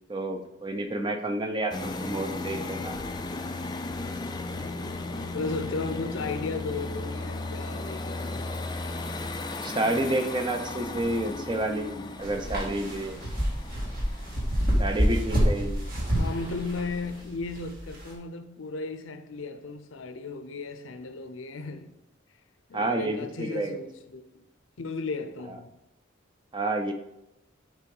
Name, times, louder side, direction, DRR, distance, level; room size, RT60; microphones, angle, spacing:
voice 1, 0.1-3.0 9.6-13.3 14.8-15.9 22.7-23.8 26.5-26.9, right 1 dB, 25° right, 0.6 m, -30 dB
sound 1, 1.7-17.2, left 2 dB, 20° left, 0.4 m, -36 dB
voice 2, 5.3-8.5 16.1-21.9 22.7-24.3 24.8-25.7, left 3 dB, 80° left, 0.6 m, -35 dB
clothes rustle, 12.2-18.1, equal, 45° right, 1.8 m, -27 dB
7.2 x 3.7 x 5.3 m
head